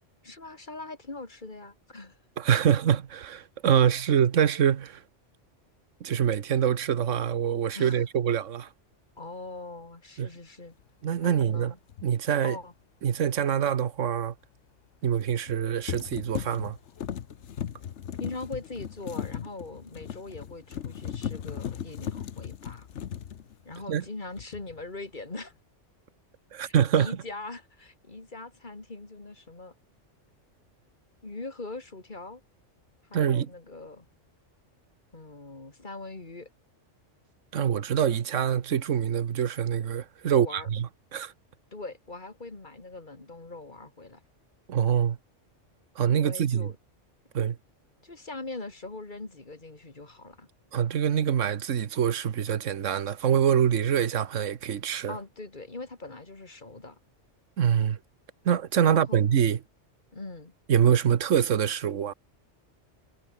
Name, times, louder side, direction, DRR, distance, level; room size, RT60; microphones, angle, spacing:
voice 1, 0.2-2.2 7.7-8.1 9.2-10.7 11.2-11.8 12.4-12.7 18.2-22.9 23.6-25.5 26.6-29.7 31.2-32.4 33.1-34.1 35.1-36.5 40.2-40.7 41.7-44.2 46.1-46.8 48.0-50.5 55.1-57.0 58.8-59.2 60.1-60.5, left 3 dB, 40° left, 2.9 m, -41 dB
voice 2, 2.4-5.0 6.0-8.7 10.2-10.3 11.0-11.7 12.0-12.6 13.0-14.3 15.0-16.8 23.9-24.0 26.5-27.1 33.1-33.5 37.5-41.3 44.7-45.2 46.0-46.7 47.3-47.6 50.7-55.1 57.6-58.0 58.4-59.6 60.7-62.1, right 8 dB, 75° right, 1.4 m, -25 dB
sound 1, 11.9-12.1 15.2-15.6 15.9-24.1 24.4-24.8, left 9 dB, 65° left, 1.2 m, -37 dB
omnidirectional pair, 1.3 m